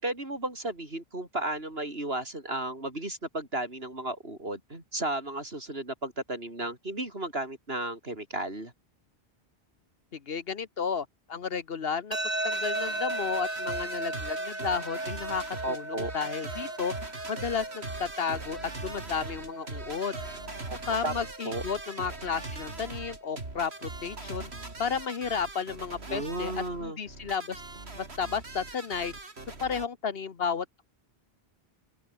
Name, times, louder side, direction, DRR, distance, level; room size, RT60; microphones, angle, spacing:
voice 1, 0.0-8.7 15.6-16.1 20.7-20.8 21.0-21.1 21.4-21.6 26.1-27.0, right 1 dB, 70° right, 6.0 m, -34 dB
voice 2, 10.1-12.2 12.4-16.9 17.3-20.2 20.9-24.5 24.8-26.5 26.8-27.6 27.9-29.1 29.6-30.8, left 6 dB, 65° left, 1.4 m, -33 dB
sound 1, 12.1-25.1, right 1 dB, 40° right, 4.8 m, -37 dB
sound 2, 12.2-29.9, right 3 dB, 90° right, 3.6 m, -41 dB
open air
omnidirectional pair, 1.1 m